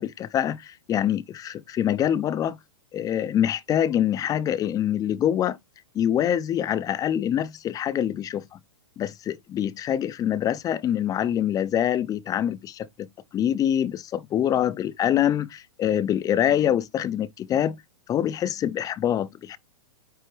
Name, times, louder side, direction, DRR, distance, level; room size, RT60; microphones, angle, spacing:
voice 1, 0.0-2.6 2.9-5.6 5.9-8.6 9.0-13.1 13.3-17.8 18.1-19.6, left 10 dB, 25° left, 0.7 m, -25 dB
9.3 x 3.5 x 3.3 m
hypercardioid pair, 125°, 16 cm